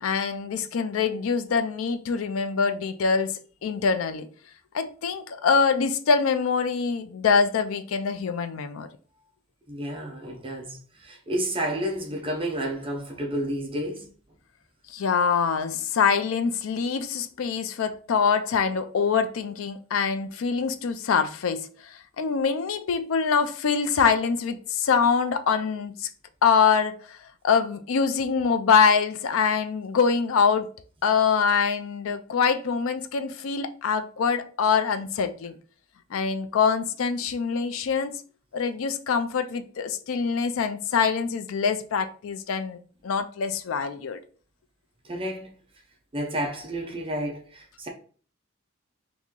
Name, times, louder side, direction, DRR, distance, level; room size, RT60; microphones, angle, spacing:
voice 1, 0.0-4.3 4.7-8.9 14.9-26.1 26.4-27.2 27.4-30.7 31.0-35.5 36.1-38.2 38.5-42.8 43.0-44.2, left 5 dB, 75° left, 0.4 m, -24 dB
voice 2, 9.7-10.8 11.0-14.1 45.1-45.5 46.1-47.9, right 1 dB, 25° right, 0.6 m, -30 dB
3.0 x 2.6 x 3.6 m
head